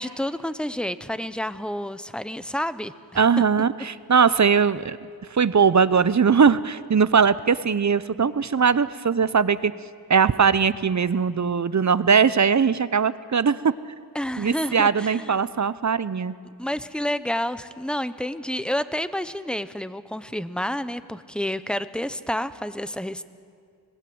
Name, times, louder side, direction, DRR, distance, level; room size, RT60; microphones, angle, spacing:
voice 1, 0.0-3.2 14.1-15.3 16.6-23.2, left 1 dB, ahead, 14 dB, 0.9 m, -29 dB
voice 2, 3.2-5.0 5.3-9.7 10.1-13.7 14.4-16.3, right 6 dB, 45° right, 16 dB, 0.8 m, -20 dB
26.0 x 20.0 x 7.9 m, 2.1 s
wide cardioid pair, 60°, 40 cm